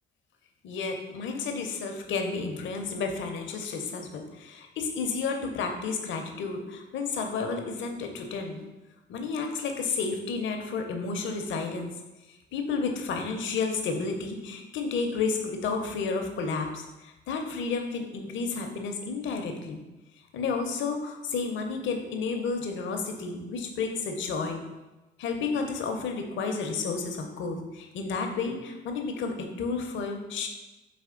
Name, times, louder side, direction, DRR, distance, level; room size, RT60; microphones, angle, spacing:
voice 1, 0.6-8.6 9.1-11.9 12.3-19.8 20.3-24.6 25.2-30.5, left 4 dB, 75° left, 4 dB, 0.7 m, -31 dB
4.2 x 3.1 x 3.7 m, 1.1 s
cardioid pair, 90°, 20 cm